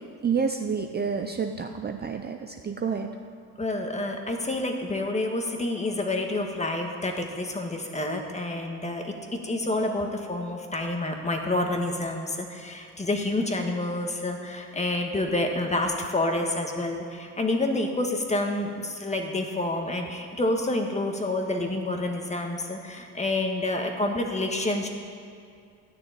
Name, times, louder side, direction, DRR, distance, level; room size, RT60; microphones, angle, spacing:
voice 1, 0.2-3.2, right 6 dB, 25° right, 5 dB, 0.6 m, -29 dB
voice 2, 3.6-9.1 9.4-24.9, left 2 dB, 20° left, 3 dB, 1.6 m, -28 dB
13.0 x 6.6 x 9.9 m, 2.4 s
cardioid pair, 120°, 38 cm